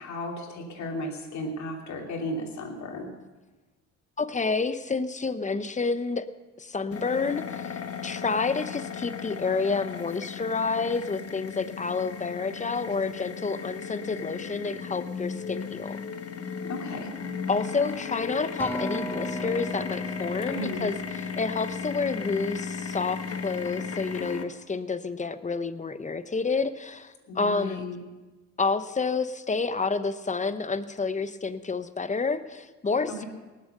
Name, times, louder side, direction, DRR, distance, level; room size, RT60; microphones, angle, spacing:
voice 1, 0.0-3.1 16.6-17.1 20.5-20.9 27.3-28.0 33.1-33.3, left 1 dB, 65° left, 1 dB, 3.1 m, -35 dB
voice 2, 4.2-6.2 6.6-16.0 17.5-20.9 21.4-27.8 28.6-33.2, left 4 dB, 25° left, 12 dB, 0.8 m, -29 dB
sound 1, 6.9-24.4, left 6 dB, 50° left, 1.3 m, -35 dB
Acoustic guitar, 18.6-23.0 23.7-23.8, right 1 dB, 5° left, 1.6 m, -39 dB
19.0 x 7.5 x 6.7 m, 1.2 s
cardioid pair, 90°, 30 cm